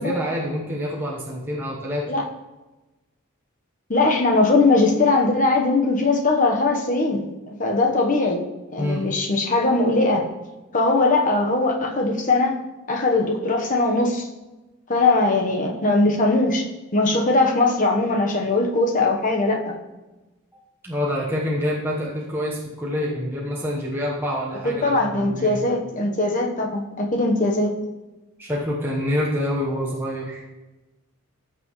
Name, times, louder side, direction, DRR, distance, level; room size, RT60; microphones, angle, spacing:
voice 1, 0.0-2.0 8.8-9.0 20.5-25.6 28.4-30.4, equal, 10° right, -4 dB, 1.1 m, -27 dB
voice 2, 3.9-8.4 8.7-10.2 10.7-12.5 12.9-14.3 14.9-16.6 16.9-19.8 24.6-27.7, left 2 dB, 35° left, 2 dB, 1.1 m, -20 dB
14.5 x 6.0 x 3.2 m, 1.1 s
head